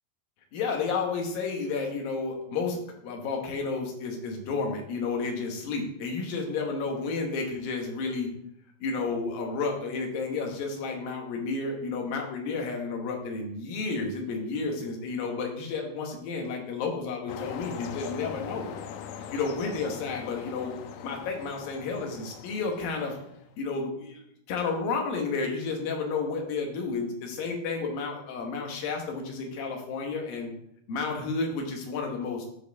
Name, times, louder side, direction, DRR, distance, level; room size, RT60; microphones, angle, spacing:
voice 1, 0.5-2.8 3.0-8.3 8.8-18.7 19.3-20.8 21.0-23.2 23.6-24.2 24.5-30.5 30.9-32.5, left 4 dB, 65° left, 2 dB, 2.8 m, -31 dB
sound 1, 17.3-23.5, left 8 dB, 80° left, 2.5 m, -41 dB
12.0 x 4.8 x 3.5 m, 0.74 s
omnidirectional pair, 4.7 m